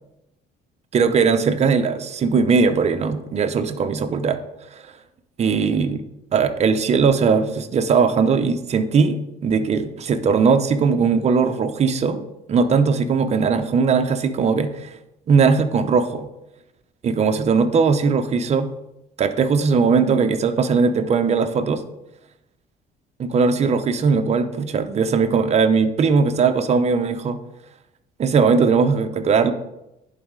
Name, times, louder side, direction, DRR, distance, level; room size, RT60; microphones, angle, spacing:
voice 1, 0.9-4.4 4.7-4.8 5.4-6.0 6.3-14.9 15.3-16.3 17.0-18.7 19.2-21.8 23.2-27.4 28.2-29.5, right 5 dB, 40° right, 9 dB, 0.7 m, -19 dB
10.5 x 4.1 x 3.7 m, 0.89 s
cardioid pair, 110°, 17 cm